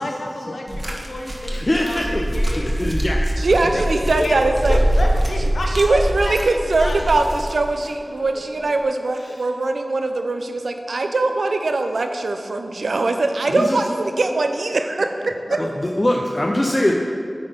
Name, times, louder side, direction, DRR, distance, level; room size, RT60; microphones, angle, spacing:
voice 1, 0.0-2.7 3.7-4.4 4.7-6.0 6.2-6.3 6.8-7.1 8.1-8.4 15.5-15.6, left 1 dB, 85° left, 1 dB, 0.8 m, -30 dB
sound 1, 0.7-7.9 8.8-8.9, right 1 dB, 25° right, 1.1 m, -23 dB
voice 2, 1.5-2.2 2.6-3.2 3.7-3.8 9.2-9.4 13.5-13.8 15.6-16.9, left 1 dB, 30° left, -1 dB, 0.5 m, -22 dB
voice 3, 3.4-4.8 5.7-15.6, right 2 dB, 90° right, 6 dB, 0.5 m, -21 dB
9.4 x 3.8 x 5.1 m, 2.3 s
wide cardioid pair, 55°, 0 cm